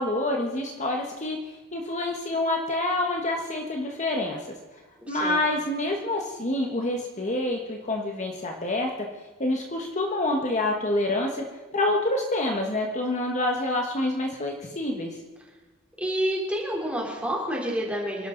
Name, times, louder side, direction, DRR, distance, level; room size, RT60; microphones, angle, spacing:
voice 1, 0.0-1.4 1.7-4.4 5.1-8.9 9.4-11.4 11.7-15.1, left 2 dB, 35° left, 1 dB, 1.4 m, -27 dB
voice 2, 5.1-5.4 16.0-18.3, equal, 5° right, -3 dB, 3.6 m, -28 dB
27.5 x 12.0 x 4.0 m, 1.2 s
head